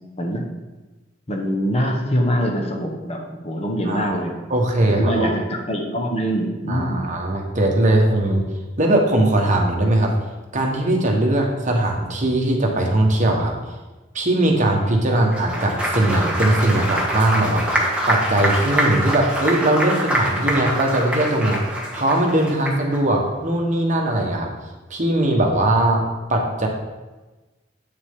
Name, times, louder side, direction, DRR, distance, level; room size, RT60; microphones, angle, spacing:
voice 1, 1.3-4.3 4.8-7.1 15.1-15.2, equal, 35° left, 1 dB, 1.1 m, -24 dB
voice 2, 3.8-4.1 4.5-5.3 6.7-8.4 8.8-10.1 10.5-13.5 14.1-17.6 18.1-21.6 21.9-24.5 24.9-26.0 26.3-26.7, right 1 dB, 40° right, 1 dB, 1.2 m, -20 dB
Applause, 15.2-23.0, right 1 dB, 5° right, 1.3 m, -24 dB
8.6 x 7.2 x 3.7 m, 1.2 s
head